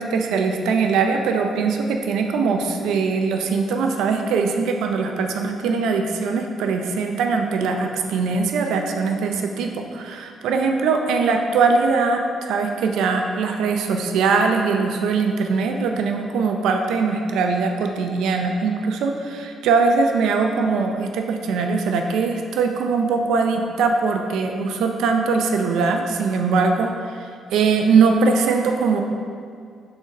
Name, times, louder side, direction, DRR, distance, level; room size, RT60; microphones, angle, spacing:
voice 1, 0.0-27.1 27.5-29.0, right 4 dB, 85° right, 4 dB, 0.5 m, -21 dB
7.0 x 3.9 x 5.2 m, 2.2 s
cardioid pair, 90°, 0 cm